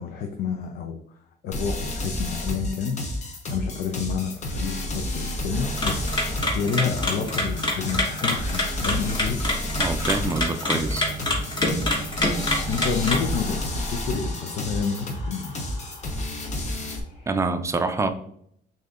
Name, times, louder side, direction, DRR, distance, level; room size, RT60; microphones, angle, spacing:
voice 1, 0.0-3.0 3.5-6.1 6.5-9.4 12.7-15.6, left 6 dB, 65° left, 3 dB, 0.5 m, -29 dB
sound 1, 1.5-17.0, left 1 dB, 45° left, 0.9 m, -31 dB
sound 2, 5.5-17.4, left 1 dB, 90° left, 1.2 m, -45 dB
sound 3, 5.7-13.4, left 1 dB, 25° left, 1.2 m, -27 dB
voice 2, 9.8-11.1 17.3-18.1, right 3 dB, 15° right, 8 dB, 0.4 m, -26 dB
6.4 x 2.8 x 2.4 m, 0.70 s
cardioid pair, 110°, 17 cm